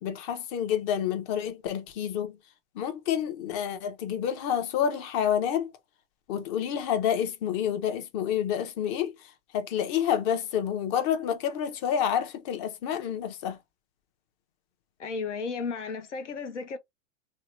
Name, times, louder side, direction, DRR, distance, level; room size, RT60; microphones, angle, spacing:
voice 1, 0.0-2.4 2.8-5.7 6.3-9.1 9.5-13.6, left 9 dB, 40° left, 0.7 m, -28 dB
voice 2, 15.0-16.8, left 4 dB, 90° left, 0.9 m, -34 dB
2.8 x 2.1 x 2.9 m
hypercardioid pair, 120°, 35 cm